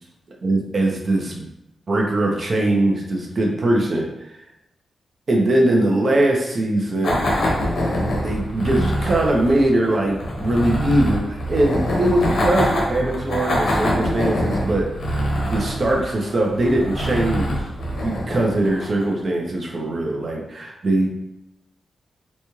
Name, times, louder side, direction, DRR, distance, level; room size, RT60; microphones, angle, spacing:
voice 1, 0.4-1.5 1.9-4.3 5.3-7.3 8.2-17.6 18.0-21.1, right 1 dB, 40° right, 0 dB, 0.7 m, -21 dB
sound 1, 7.0-19.2, equal, 75° left, 1.0 m, -24 dB
4.1 x 2.3 x 3.1 m, 0.87 s
wide cardioid pair, 145°, 0 cm